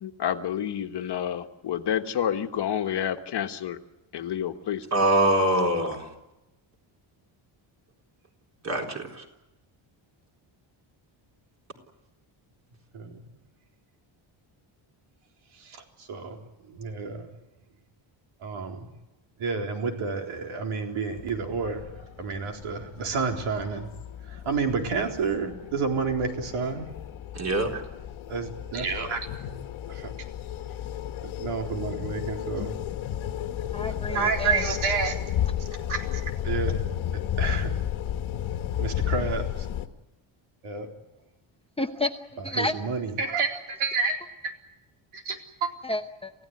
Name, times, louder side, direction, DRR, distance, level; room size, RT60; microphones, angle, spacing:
voice 1, 0.0-3.8 4.1-4.8, left 9 dB, 55° left, 7 dB, 1.4 m, -29 dB
voice 2, 4.9-6.1 8.6-9.2 27.3-27.8, right 1 dB, 35° right, 1 dB, 4.1 m, -24 dB
voice 3, 15.6-16.4 16.7-17.3 18.4-18.9 19.4-21.8 22.2-23.9 24.3-26.9 28.3-29.3 29.9-30.1 31.2-32.8 34.1-35.2 35.9-36.8 37.1-37.7 38.8-39.7 40.6-40.9 42.6-44.5 45.1-45.7, right 5 dB, 80° right, 2 dB, 4.0 m, -30 dB
sound 1, 21.2-39.9, left 10 dB, 70° left, 1.5 m, -33 dB
voice 4, 33.7-34.7 41.8-42.2 42.4-42.8 45.8-46.3, left 2 dB, 10° left, 5 dB, 0.8 m, -30 dB
28.0 x 16.0 x 9.7 m, 0.99 s
cardioid pair, 155°, 49 cm